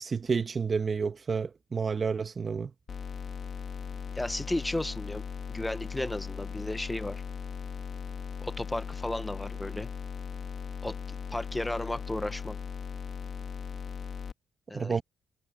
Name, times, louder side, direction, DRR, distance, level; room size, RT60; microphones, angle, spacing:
voice 1, 0.0-2.7 14.7-15.0, right 5 dB, 40° right, 1.9 m, -30 dB
sound 1, 2.9-14.3, left 6 dB, 50° left, 3.9 m, -38 dB
voice 2, 4.1-5.2 5.5-7.2 8.4-9.9 10.8-11.0 11.3-12.6 14.7-15.0, left 1 dB, 10° left, 1.3 m, -34 dB
cardioid pair, 90°, 0 cm